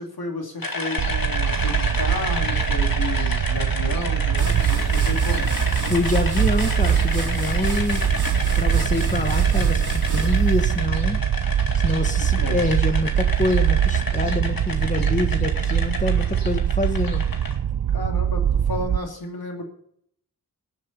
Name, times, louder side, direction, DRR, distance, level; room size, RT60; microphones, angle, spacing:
voice 1, 0.0-5.5 12.1-12.8 17.9-19.6, left 2 dB, 85° left, 2 dB, 2.7 m, -33 dB
sound 1, 0.6-17.5, left 2 dB, 70° left, 2.3 m, -31 dB
sound 2, 1.0-19.0, right 9 dB, 80° right, 0.5 m, -22 dB
sound 3, 4.4-10.9, right 2 dB, 55° right, 2.6 m, -30 dB
voice 2, 5.9-8.0 8.6-11.2 11.8-17.2, left 2 dB, 20° left, 7 dB, 1.4 m, -26 dB
18.0 x 7.3 x 5.3 m, 0.67 s
wide cardioid pair, 50°, 36 cm